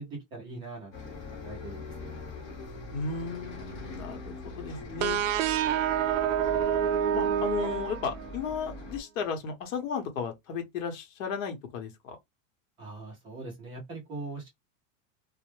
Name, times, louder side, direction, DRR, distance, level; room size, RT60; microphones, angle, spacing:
voice 1, 0.0-2.2 12.8-14.5, right 3 dB, 15° right, 0.3 m, -42 dB
Bus, 0.9-9.0, left 2 dB, 30° left, 0.7 m, -42 dB
voice 2, 2.9-5.2 6.2-6.5 7.1-12.2, left 6 dB, 75° left, 0.9 m, -35 dB
sound 1, 5.0-8.5, right 9 dB, 70° right, 0.5 m, -27 dB
2.1 x 2.0 x 2.9 m
supercardioid pair, 160°, 40 cm